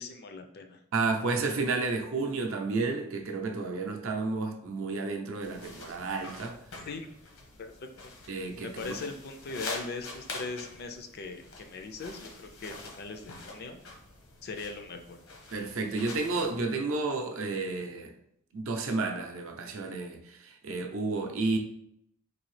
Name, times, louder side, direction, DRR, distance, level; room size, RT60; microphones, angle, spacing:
voice 1, 0.0-0.8 6.8-7.1 7.6-8.1 8.6-13.8 14.4-15.2, left 3 dB, 50° left, 6 dB, 0.4 m, -40 dB
voice 2, 0.9-6.5 8.3-8.9 15.5-18.1 18.5-20.2 20.4-21.6, right 3 dB, 70° right, 3 dB, 0.6 m, -31 dB
sound 1, 5.4-16.5, left 2 dB, 75° left, 0.9 m, -45 dB
4.0 x 2.7 x 3.2 m, 0.76 s
head